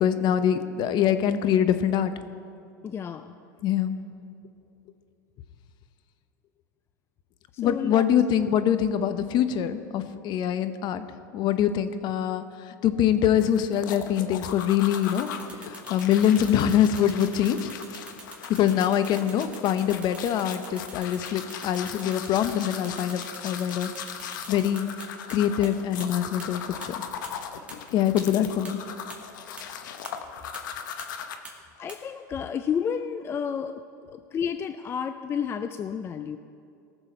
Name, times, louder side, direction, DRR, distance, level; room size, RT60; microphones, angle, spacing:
voice 1, 0.0-2.1 3.6-4.0 7.6-11.0 11.3-15.3 15.6-17.7 18.5-23.9 24.5-24.9 25.3-26.9 27.9-28.8, left 10 dB, 45° left, 11 dB, 0.8 m, -24 dB
voice 2, 2.8-3.4 7.6-8.0 31.8-33.8 34.1-36.4, left 7 dB, 25° left, 10 dB, 0.4 m, -31 dB
sound 1, 13.4-31.4, left 8 dB, 80° left, 0.9 m, -39 dB
sound 2, 15.0-25.3 25.6-25.7 26.0-26.1 26.4-26.5 26.8-26.9 27.2-27.3 27.7-27.8 28.2-28.3 28.6-28.7 29.1-29.2 29.6-29.7 30.0-30.1 30.5-30.6 31.0-31.1 31.4-31.5 31.9-32.0, right 3 dB, 10° right, 2.2 m, -44 dB
18.5 x 6.9 x 4.4 m, 2.6 s
hypercardioid pair, 110°, 10 cm